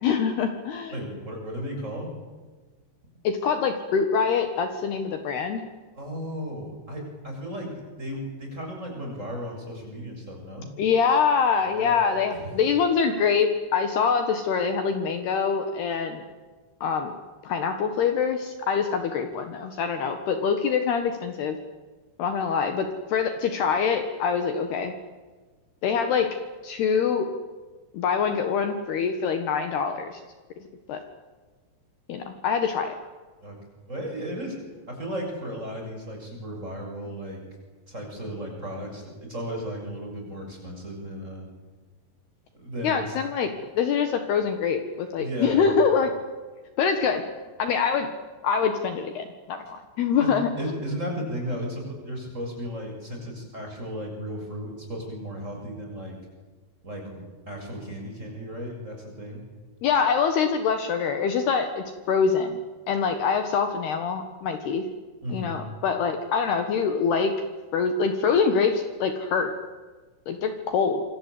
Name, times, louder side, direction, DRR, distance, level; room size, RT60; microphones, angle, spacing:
voice 1, 0.0-0.9 3.2-5.6 10.8-16.2 16.8-17.1 17.4-21.6 22.2-24.9 25.8-26.4 26.6-27.3 27.9-30.2 30.9-31.0 32.1-33.0 42.8-43.5 43.8-46.1 46.8-47.2 47.6-48.1 48.4-50.5 59.8-62.6 62.9-64.9 65.3-67.3 67.7-69.5 70.3-71.0, left 6 dB, 65° left, 7 dB, 3.3 m, -24 dB
voice 2, 0.9-2.1 5.9-10.7 11.6-12.5 33.4-33.6 33.9-34.6 34.9-37.4 37.9-41.5 42.5-43.2 45.2-45.7 50.2-50.3 50.6-56.2 56.8-59.4 65.2-65.6, equal, 15° right, 1 dB, 7.4 m, -35 dB
27.0 x 25.5 x 8.4 m, 1.3 s
omnidirectional pair, 5.5 m